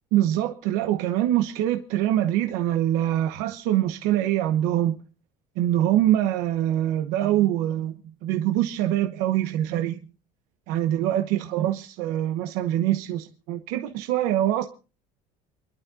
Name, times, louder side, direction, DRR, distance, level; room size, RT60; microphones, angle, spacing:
voice 1, 0.1-5.0 5.6-10.0 10.7-14.7, right 12 dB, 85° right, 1.0 m, -24 dB
29.0 x 12.0 x 2.7 m
cardioid pair, 150°, 15 cm